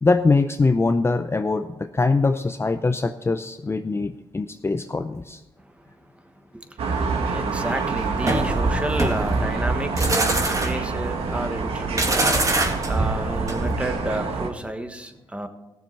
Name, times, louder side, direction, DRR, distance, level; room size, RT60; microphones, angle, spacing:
voice 1, 0.0-5.4, left 3 dB, 25° left, 9 dB, 0.6 m, -22 dB
sound 1, 6.8-14.5, right 4 dB, 80° right, 1.4 m, -27 dB
voice 2, 7.3-12.3 12.6-15.5, right 1 dB, 10° right, 7 dB, 1.3 m, -31 dB
sound 2, 8.2-13.9, right 2 dB, 35° right, 2.1 m, -24 dB
16.0 x 7.1 x 4.5 m, 1.0 s
cardioid pair, 60°, 10 cm